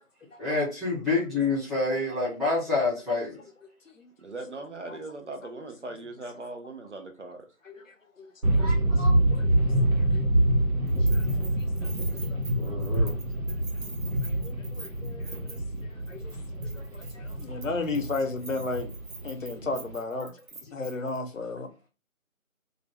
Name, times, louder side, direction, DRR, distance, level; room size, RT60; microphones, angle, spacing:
voice 1, 0.4-3.4 8.5-9.2 12.6-13.2 16.7-16.8 17.1-17.2, left 3 dB, ahead, 0.6 m, -28 dB
voice 2, 4.2-7.5, right 2 dB, 55° right, 0.7 m, -39 dB
voice 3, 7.7-8.9 9.3-9.4 10.0-10.1 11.1-11.3 11.6-12.4 13.0-13.1 14.2-15.6 15.9-16.3 16.6-18.9 19.2-20.3 20.7-21.7, left 3 dB, 65° left, 0.7 m, -35 dB
sound 1, 8.4-19.9, right 1 dB, 85° right, 1.1 m, -26 dB
Keys jangling, 10.9-16.3 16.6-21.2, right 3 dB, 70° right, 1.0 m, -45 dB
2.5 x 2.1 x 3.1 m
figure-of-eight pair, 165°, 43 cm